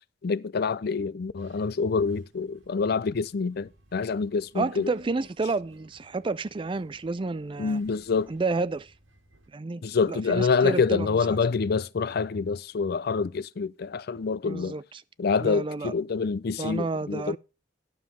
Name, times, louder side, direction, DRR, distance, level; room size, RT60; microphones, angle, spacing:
voice 1, 0.2-4.9 7.6-8.3 9.8-14.7 15.2-17.4, left 5 dB, 55° left, 0.4 m, -26 dB
Subway metro underground, 1.4-9.5, right 1 dB, 85° right, 2.1 m, -56 dB
voice 2, 4.5-7.8 8.3-8.9 9.5-9.8 10.1-11.4 14.4-15.0 15.4-15.9 16.6-17.4, right 3 dB, 25° right, 0.4 m, -30 dB
11.5 x 7.2 x 4.3 m
head